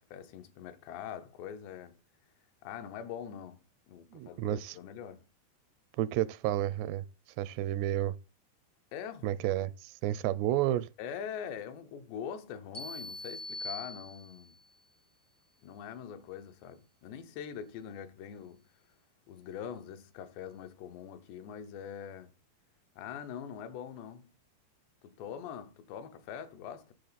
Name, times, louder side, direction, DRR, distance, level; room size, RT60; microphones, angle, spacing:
voice 1, 0.1-2.0 2.6-5.3 8.9-9.4 11.0-14.6 15.6-18.6 19.3-22.3 23.0-24.3 25.0-26.9, left 8 dB, 85° left, 3.2 m, -43 dB
voice 2, 4.1-4.7 6.0-7.0 7.4-8.2 9.2-9.7 10.0-10.9, right 13 dB, 85° right, 2.7 m, -30 dB
sound 1, 12.7-14.6, left 2 dB, 60° left, 0.4 m, -42 dB
10.0 x 6.9 x 4.0 m
omnidirectional pair, 4.9 m